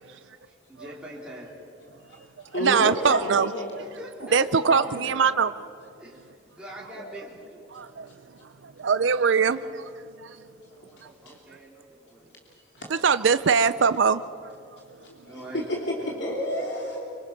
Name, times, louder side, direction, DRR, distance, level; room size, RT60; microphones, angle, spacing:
voice 1, 0.0-1.6 3.8-4.4 6.0-6.2 6.5-7.6 10.7-12.3 15.1-16.1, right 1 dB, 5° right, -6 dB, 3.6 m, -44 dB
voice 2, 2.0-3.7 4.2-5.2 7.0-7.1 11.0-11.3 12.7-12.8 15.0-15.4 15.9-17.0, equal, 65° left, -2 dB, 3.0 m, -32 dB
voice 3, 2.5-3.5 4.3-5.5 7.7-8.1 8.8-9.8 10.2-10.3 12.9-14.2, right 6 dB, 75° right, 13 dB, 0.5 m, -22 dB
25.0 x 25.0 x 5.8 m, 2.5 s
head